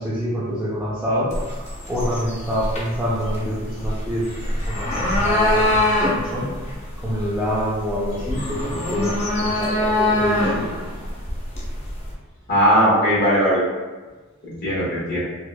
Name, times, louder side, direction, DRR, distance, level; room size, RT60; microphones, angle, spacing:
voice 1, 0.0-6.6 7.0-11.0, equal, 5° right, -9 dB, 0.4 m, -26 dB
sound 1, 1.3-12.1, left 1 dB, 30° left, 0.6 m, -24 dB
voice 2, 12.5-13.6 14.5-15.2, equal, 50° left, -8 dB, 1.2 m, -18 dB
4.2 x 2.3 x 2.2 m, 1.3 s
head